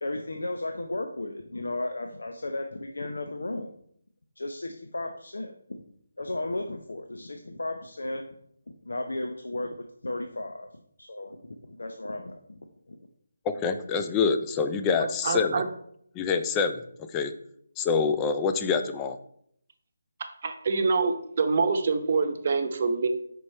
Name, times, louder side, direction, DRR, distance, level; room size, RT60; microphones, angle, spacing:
voice 1, 0.0-3.7 4.4-5.8 6.2-8.3 8.8-10.7 11.0-11.4 11.7-12.6 12.9-13.0, left 2 dB, 90° left, 5 dB, 0.6 m, -34 dB
voice 2, 13.5-15.6 16.2-16.8 17.1-17.3 17.8-19.2, left 5 dB, 15° left, 8 dB, 0.3 m, -26 dB
voice 3, 15.0-15.7 20.4-23.1, right 4 dB, 45° right, 6 dB, 0.8 m, -26 dB
5.3 x 4.6 x 4.2 m, 0.67 s
figure-of-eight pair, 165°, 0 cm